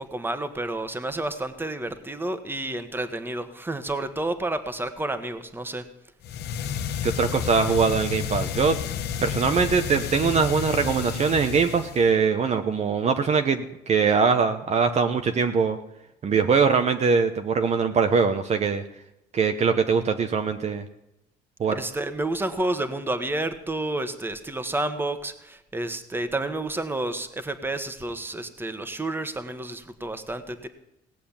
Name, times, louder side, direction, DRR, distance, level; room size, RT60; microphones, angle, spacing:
voice 1, 0.0-5.8 7.7-7.8 21.7-30.7, right 2 dB, 10° right, 10 dB, 1.5 m, -30 dB
sound 1, 6.2-12.1, left 8 dB, 75° left, 1.2 m, -31 dB
voice 2, 7.0-8.8 9.2-15.8 16.2-18.8 19.3-20.8 21.6-21.8, right 5 dB, 40° right, 7 dB, 1.1 m, -22 dB
18.0 x 7.7 x 8.8 m, 0.86 s
cardioid pair, 110°, 17 cm